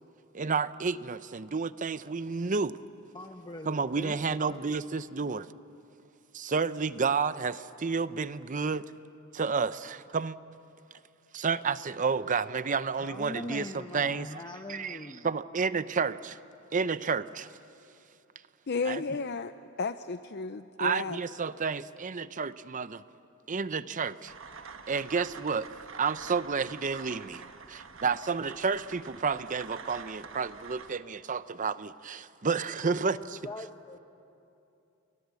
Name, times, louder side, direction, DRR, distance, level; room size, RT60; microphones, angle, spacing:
voice 1, 0.3-2.8 3.7-5.5 6.3-8.9 9.3-10.4 11.3-14.4 14.7-15.0 15.2-16.4 16.7-17.5 18.8-19.0 20.8-23.0 23.5-24.3 24.9-25.7 25.9-33.4, right 5 dB, 40° right, 14 dB, 0.6 m, -31 dB
voice 2, 3.1-4.6 13.0-15.3 32.8-34.0, left 1 dB, 20° left, 5 dB, 1.0 m, -42 dB
voice 3, 18.7-19.5 19.8-21.2, left 4 dB, 55° left, 10 dB, 0.6 m, -33 dB
sound 1, 24.3-30.9, right 5 dB, 70° right, 1.4 m, -47 dB
29.5 x 24.5 x 8.3 m, 2.7 s
head